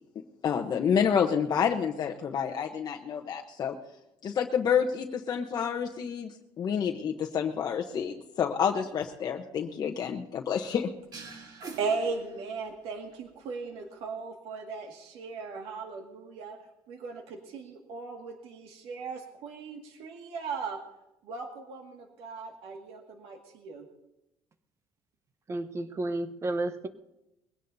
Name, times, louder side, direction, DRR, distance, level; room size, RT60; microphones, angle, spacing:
voice 1, 0.4-3.8 4.2-10.9, left 7 dB, 40° left, 2 dB, 0.9 m, -29 dB
sound 1, 11.1-12.9, right 4 dB, 45° right, 2.4 m, -44 dB
voice 2, 11.7-16.6 16.9-20.8 21.2-23.9, right 4 dB, 85° right, 2 dB, 1.9 m, -37 dB
voice 3, 25.5-26.9, right 2 dB, 30° right, 10 dB, 1.0 m, -31 dB
21.5 x 17.0 x 2.7 m, 0.93 s
cardioid pair, 140°, 10 cm